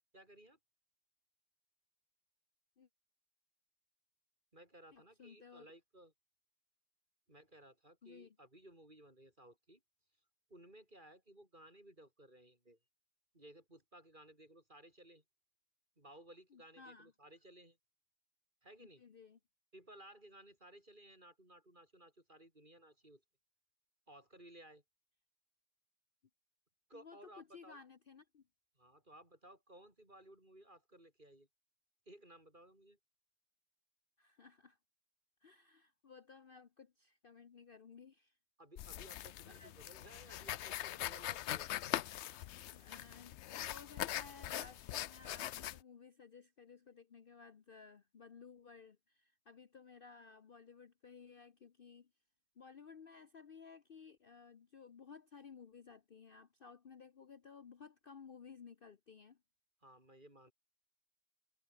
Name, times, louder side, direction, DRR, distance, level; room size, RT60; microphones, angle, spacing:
voice 1, 0.1-0.6 4.5-6.1 7.3-9.8 10.5-12.8 13.3-15.2 16.0-17.8 18.6-19.0 19.7-23.2 24.1-24.8 26.9-27.8 28.8-31.5 32.1-33.0 38.6-41.7 59.8-60.5, right 1 dB, 35° right, 7.3 m, -59 dB
voice 2, 4.9-5.7 8.0-8.4 16.5-17.1 18.8-19.4 26.9-28.4 34.2-34.8 35.4-38.4 39.4-39.7 42.7-43.4 43.7-52.1 52.6-59.4, left 5 dB, 45° left, 1.0 m, -57 dB
sound 1, 38.8-45.8, left 12 dB, 65° left, 0.8 m, -42 dB
omnidirectional pair, 1.4 m